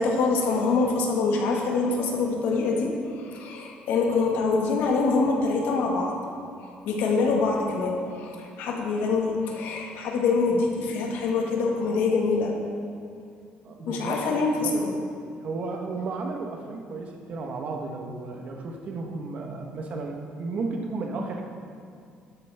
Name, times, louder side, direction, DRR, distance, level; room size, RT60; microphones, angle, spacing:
voice 1, 0.0-6.1 6.6-12.5 13.9-14.9, left 4 dB, 85° left, 0 dB, 1.6 m, -25 dB
voice 2, 13.6-14.7 15.4-21.4, right 3 dB, 45° right, 2 dB, 1.2 m, -33 dB
12.0 x 9.0 x 3.5 m, 2.3 s
cardioid pair, 160°, 3 cm